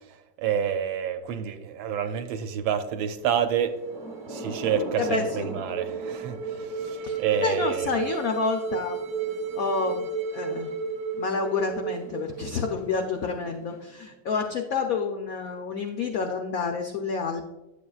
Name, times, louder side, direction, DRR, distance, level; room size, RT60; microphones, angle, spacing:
voice 1, 0.4-3.7 4.3-7.9, right 8 dB, 80° right, 8 dB, 1.4 m, -28 dB
Thunder / Rain, 3.6-14.1, equal, 15° right, 1.2 m, -42 dB
sound 1, 3.9-13.1, right 5 dB, 65° right, 1.2 m, -33 dB
voice 2, 5.0-5.5 7.0-9.0 9.5-10.1 10.3-10.7 11.1-17.5, left 5 dB, 85° left, 3 dB, 0.7 m, -29 dB
10.0 x 7.2 x 2.3 m, 1.1 s
omnidirectional pair, 2.3 m